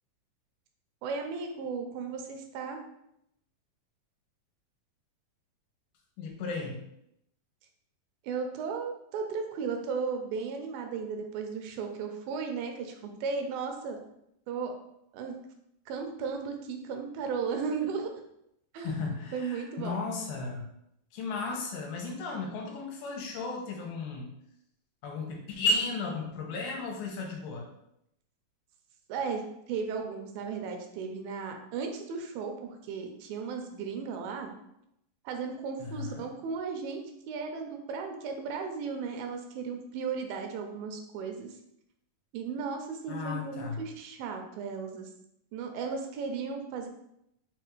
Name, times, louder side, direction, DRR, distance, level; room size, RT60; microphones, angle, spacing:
voice 1, 1.0-2.8 8.2-14.0 14.5-14.7 15.1-15.4 15.9-18.1 18.7-19.0 19.3-20.0 29.1-34.5 35.3-41.6 42.3-45.1 45.5-46.9, right 5 dB, 85° right, 4 dB, 2.4 m, -35 dB
voice 2, 6.2-6.8 18.8-20.7 21.1-24.3 25.0-27.7 35.8-36.2 43.1-43.8, left 3 dB, 80° left, -1 dB, 2.4 m, -34 dB
5.7 x 2.4 x 3.0 m, 0.78 s
omnidirectional pair, 4.1 m